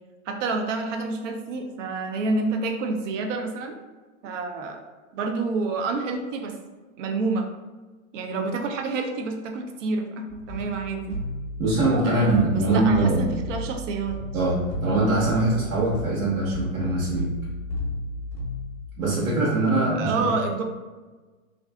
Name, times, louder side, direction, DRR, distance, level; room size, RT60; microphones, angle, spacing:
voice 1, 0.3-3.8 4.2-4.8 5.1-6.6 7.0-7.5 8.1-11.2 12.1-14.2 20.0-20.6, right 3 dB, 60° right, 4 dB, 0.5 m, -28 dB
sound 1, 10.3-18.8, left 1 dB, 15° left, 0.6 m, -34 dB
voice 2, 11.6-13.2 14.3-17.3 19.0-20.3, right 2 dB, 80° right, -7 dB, 1.1 m, -22 dB
2.6 x 2.4 x 2.2 m, 1.3 s
hypercardioid pair, 140°, 42 cm